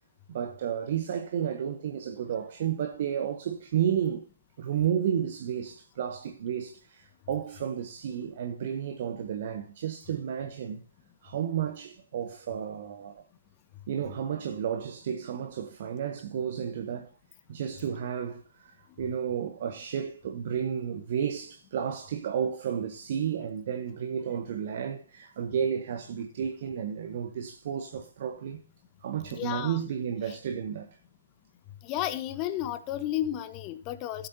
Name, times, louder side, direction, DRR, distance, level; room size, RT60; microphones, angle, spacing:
voice 1, 0.3-4.3 4.6-10.8 11.2-13.2 13.9-17.1 17.5-28.6 29.0-31.0, right 8 dB, 45° right, 0.9 m, -32 dB
voice 2, 29.3-29.8 31.8-34.3, left 12 dB, 25° left, 0.9 m, -32 dB
16.5 x 7.9 x 2.8 m
figure-of-eight pair, 130°, 0 cm